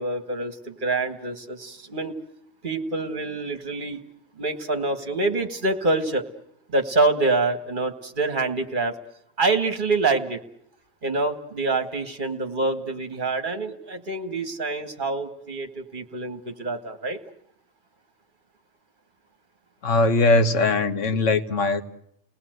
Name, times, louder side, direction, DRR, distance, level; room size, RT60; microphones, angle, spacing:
voice 1, 0.0-2.1 2.6-4.0 4.4-6.2 6.7-8.9 9.4-10.4 11.0-17.2, right 3 dB, 40° right, 7 dB, 1.8 m, -26 dB
voice 2, 19.8-21.8, left 2 dB, 80° left, 8 dB, 1.6 m, -20 dB
30.0 x 19.0 x 7.9 m, 0.73 s
omnidirectional pair, 1.3 m